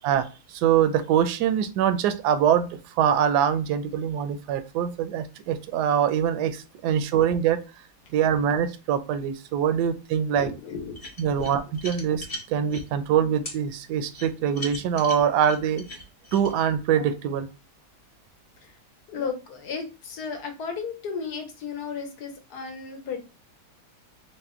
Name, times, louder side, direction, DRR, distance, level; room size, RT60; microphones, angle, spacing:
voice 1, 0.0-2.7 3.0-7.6 8.1-10.5 11.2-15.8 16.3-17.5, right 9 dB, 75° right, 10 dB, 1.1 m, -24 dB
voice 2, 10.3-11.0 11.4-11.5 18.6-18.8 19.1-23.2, left 5 dB, 75° left, 4 dB, 1.3 m, -34 dB
sound 1, 10.9-12.8 13.4-13.6 14.1-16.5, left 1 dB, 30° left, 0.7 m, -38 dB
4.1 x 2.1 x 3.5 m, 0.31 s
omnidirectional pair, 1.8 m